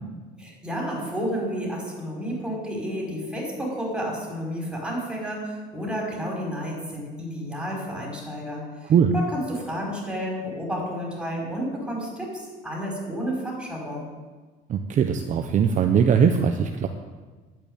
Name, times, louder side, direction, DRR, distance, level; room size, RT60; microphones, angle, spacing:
voice 1, 0.4-14.1, equal, 5° right, -2 dB, 5.2 m, -31 dB
voice 2, 14.7-16.9, right 7 dB, 40° right, 5 dB, 0.8 m, -20 dB
11.0 x 8.7 x 8.8 m, 1.3 s
cardioid pair, 125°, 19 cm